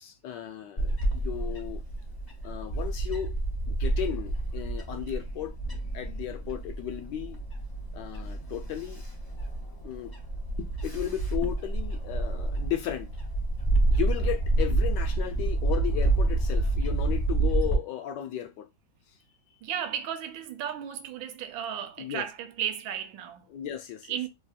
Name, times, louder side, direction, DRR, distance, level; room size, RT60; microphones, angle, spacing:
voice 1, 0.0-1.8 2.4-3.4 3.7-5.5 5.9-7.4 7.9-9.0 9.8-10.2 10.6-13.1 13.9-18.7 22.0-22.2 23.5-24.2, left 11 dB, 75° left, 1.2 m, -35 dB
Bird / Wind, 0.8-17.8, right 2 dB, 35° left, 0.6 m, -29 dB
voice 2, 19.6-23.5 24.1-24.3, right 9 dB, 85° right, 1.4 m, -34 dB
3.4 x 2.6 x 2.3 m
omnidirectional pair, 2.1 m